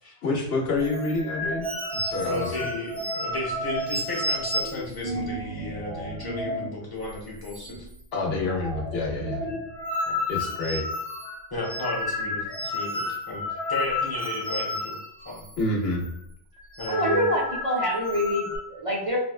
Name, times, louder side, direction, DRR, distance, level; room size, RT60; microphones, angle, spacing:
voice 1, 0.2-2.5 8.1-9.4 10.3-10.8 15.6-16.0, left 2 dB, 70° left, -1 dB, 0.9 m, -28 dB
sound 1, 0.8-6.7 7.0-7.2 7.4-8.0 8.3-15.6 15.9-16.1 16.6-18.6, left 1 dB, 80° right, 1.3 m, -31 dB
voice 2, 2.2-7.9 8.3-8.5 9.4-9.6 10.0-10.2 11.5-15.0 15.2-15.4 16.8-17.3, left 1 dB, 20° left, -3 dB, 0.9 m, -34 dB
voice 3, 16.9-19.2, equal, 40° right, -6 dB, 0.5 m, -26 dB
4.2 x 2.1 x 2.3 m, 0.73 s
omnidirectional pair, 1.1 m